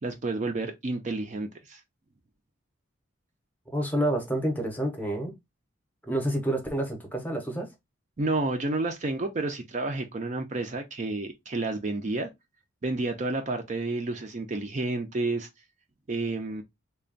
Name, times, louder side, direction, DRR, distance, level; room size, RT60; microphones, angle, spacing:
voice 1, 0.0-1.8 8.2-12.3 12.8-15.5 16.1-16.6, right 2 dB, 35° right, 0.4 m, -30 dB
voice 2, 3.7-5.3 6.1-7.7, right 1 dB, 10° left, 0.8 m, -28 dB
3.3 x 2.3 x 3.8 m
head